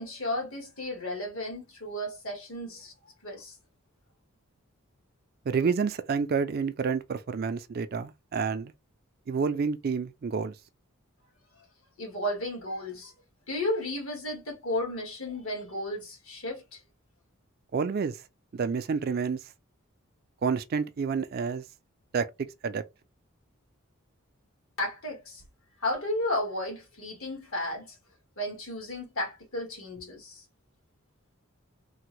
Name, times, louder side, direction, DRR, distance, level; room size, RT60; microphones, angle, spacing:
voice 1, 0.0-2.9 3.2-3.5 12.0-13.1 13.5-16.8 24.8-25.4 25.8-27.9 28.4-30.4, left 1 dB, 75° left, 1.5 m, -33 dB
voice 2, 5.5-8.7 9.3-10.5 17.7-18.2 18.5-19.4 20.4-21.6 22.1-22.3 22.6-22.8, right 5 dB, 45° right, 0.3 m, -29 dB
3.4 x 2.1 x 3.0 m
head